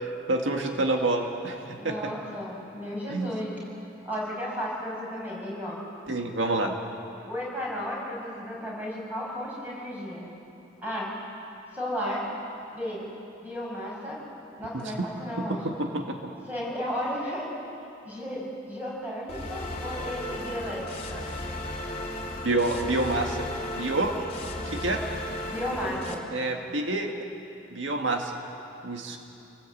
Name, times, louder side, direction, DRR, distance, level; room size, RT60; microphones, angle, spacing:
voice 1, 0.0-2.1 3.1-3.3 6.1-6.7 14.7-14.9 15.5-16.0 22.4-23.4 23.8-24.1 24.7-25.0 26.3-27.1 27.7-28.3 28.8-29.2, right 2 dB, 75° right, 3 dB, 1.9 m, -27 dB
voice 2, 1.8-3.5 4.0-5.8 7.3-10.3 10.8-11.1 11.7-12.3 12.7-13.0 13.4-14.2 14.6-15.6 16.5-17.5 18.0-21.3 25.5-26.2, equal, 10° right, -4 dB, 6.8 m, -34 dB
sound 1, 19.3-26.1, left 1 dB, 35° left, 2.8 m, -35 dB
28.0 x 19.0 x 8.6 m, 2.9 s
head